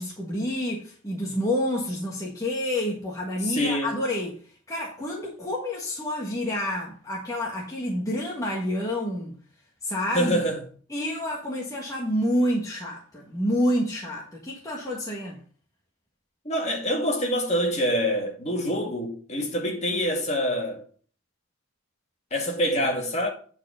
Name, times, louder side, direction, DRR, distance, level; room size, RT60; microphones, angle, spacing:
voice 1, 0.0-9.3 9.8-10.4 10.9-15.4, left 1 dB, 15° left, 1.6 m, -28 dB
voice 2, 3.5-3.9 10.1-10.6 16.4-20.8 22.3-23.3, equal, 35° left, 2.3 m, -26 dB
9.4 x 4.6 x 5.6 m
head